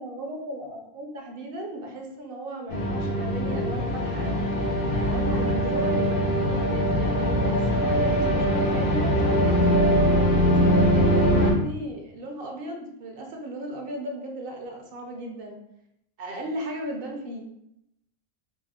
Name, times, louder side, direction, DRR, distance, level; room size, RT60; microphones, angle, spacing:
voice 1, 0.0-4.5 4.9-10.0 10.4-15.6 16.2-17.4, right 1 dB, 65° right, 2 dB, 0.7 m, -36 dB
sound 1, 2.7-11.5, equal, 75° left, 1.0 m, -22 dB
4.1 x 2.0 x 2.2 m, 0.79 s
omnidirectional pair, 1.1 m